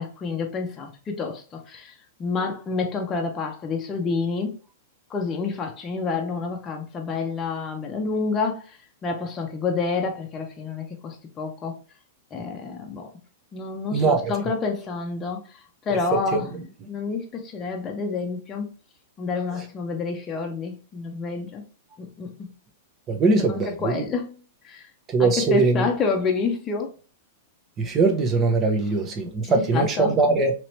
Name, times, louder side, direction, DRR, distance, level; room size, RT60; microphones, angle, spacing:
voice 1, 0.0-1.9 2.2-4.6 5.1-8.6 9.0-11.8 12.3-13.1 13.5-15.4 15.9-16.5 16.9-18.7 19.2-21.6 22.0-22.5 23.5-24.4 24.6-24.9 25.2-26.9 29.4-30.1, left 4 dB, 25° left, 0.7 m, -28 dB
voice 2, 13.9-14.3 16.1-16.5 19.5-19.6 23.1-24.0 25.1-25.9 27.8-30.5, right 3 dB, 25° right, 0.8 m, -21 dB
3.0 x 2.9 x 3.0 m
hypercardioid pair, 130°, 0 cm